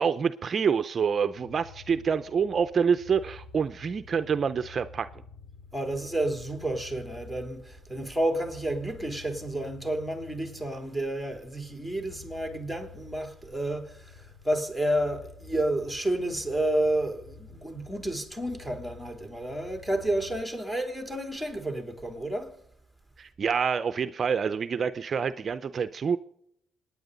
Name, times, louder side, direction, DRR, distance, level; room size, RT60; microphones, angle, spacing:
voice 1, 0.0-5.1 23.2-26.2, right 6 dB, 45° right, 0.6 m, -27 dB
sound 1, 1.1-20.5, left 4 dB, 50° left, 5.6 m, -50 dB
voice 2, 5.7-22.5, right 1 dB, 5° left, 3.3 m, -30 dB
26.0 x 9.7 x 4.0 m
cardioid pair, 90°, 0 cm